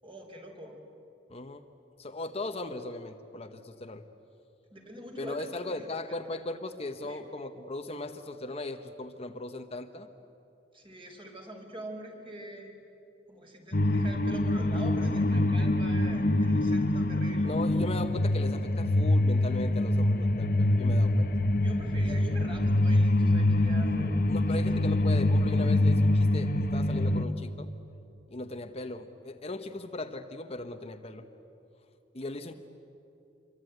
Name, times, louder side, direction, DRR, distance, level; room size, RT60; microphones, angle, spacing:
voice 1, 0.0-0.8 4.7-5.5 5.7-6.2 7.0-7.2 10.7-12.7 13.3-17.5 21.6-24.1 24.4-24.6, right 1 dB, 30° right, 2 dB, 4.9 m, -44 dB
voice 2, 1.3-1.6 2.0-4.0 5.2-10.1 17.4-21.3 24.3-27.7 28.3-31.3 32.1-32.5, left 2 dB, 35° left, 7 dB, 1.1 m, -38 dB
sound 1, 13.7-27.2, left 1 dB, 55° left, 1.2 m, -25 dB
27.0 x 23.5 x 9.4 m, 2.8 s
head